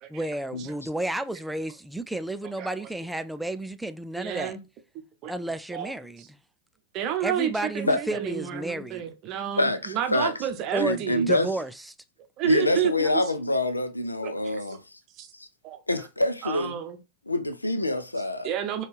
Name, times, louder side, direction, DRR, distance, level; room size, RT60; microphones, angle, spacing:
voice 1, 0.1-4.6 5.3-6.4 7.2-9.1 10.7-11.9, right 1 dB, 5° right, 0.3 m, -32 dB
voice 2, 4.2-4.6 5.2-5.3 5.7-5.9 6.9-11.3 12.4-13.3 14.2-14.8 15.1-15.3 15.6-16.1 16.4-17.0 18.4-18.8, right 10 dB, 40° right, 0.7 m, -30 dB
voice 3, 9.6-10.3 10.8-11.5 12.4-15.0 15.3-15.5 15.9-16.8 17.3-18.5, left 2 dB, 85° left, 0.4 m, -26 dB
4.1 x 2.4 x 3.3 m
figure-of-eight pair, 90°, 0 cm